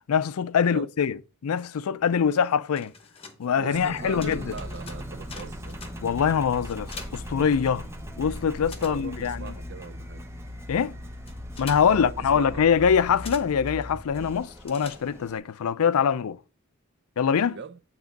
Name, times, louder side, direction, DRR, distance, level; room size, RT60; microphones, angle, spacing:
voice 1, 0.1-1.2 1.4-2.9 3.4-4.5 6.0-7.8 8.2-9.5 10.7-11.0 11.6-16.4 17.2-17.6, left 7 dB, 90° left, 0.4 m, -24 dB
sound 1, 2.5-8.1 8.4-15.5, left 4 dB, 25° left, 0.9 m, -47 dB
voice 2, 3.6-5.8 8.6-10.2 11.8-12.6 17.5-17.8, right 5 dB, 50° right, 0.5 m, -40 dB
Engine, 3.7-15.4, equal, 10° right, 0.7 m, -39 dB
9.1 x 3.0 x 5.1 m
head